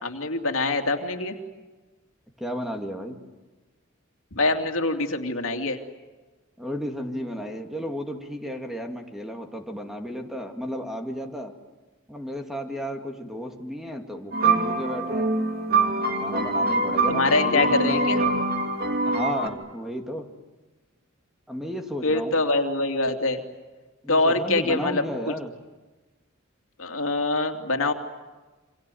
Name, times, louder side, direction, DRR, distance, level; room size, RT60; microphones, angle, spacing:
voice 1, 0.0-1.4 4.3-5.8 17.1-18.2 22.0-23.4 24.1-25.0 26.8-27.9, left 2 dB, 80° left, 4 dB, 2.7 m, -24 dB
voice 2, 2.4-3.2 6.6-11.5 12.1-15.3 16.2-18.5 19.0-20.3 21.5-22.4 24.0-25.5, equal, ahead, 4 dB, 2.4 m, -33 dB
sound 1, 14.3-19.5, right 2 dB, 50° right, 3.0 m, -24 dB
29.0 x 26.0 x 7.9 m, 1.2 s
head